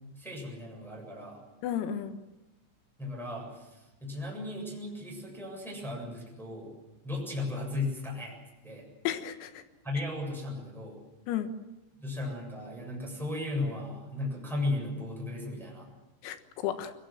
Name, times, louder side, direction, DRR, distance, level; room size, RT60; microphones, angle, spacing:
voice 1, 0.2-1.4 3.0-6.7 7.0-8.4 8.6-8.9 9.8-11.0 12.0-15.9, left 2 dB, ahead, -1 dB, 7.0 m, -36 dB
voice 2, 1.6-2.2 9.1-9.6 11.3-11.5 16.2-16.9, left 10 dB, 90° left, 8 dB, 4.2 m, -33 dB
23.0 x 22.0 x 7.7 m, 1.0 s
omnidirectional pair, 6.0 m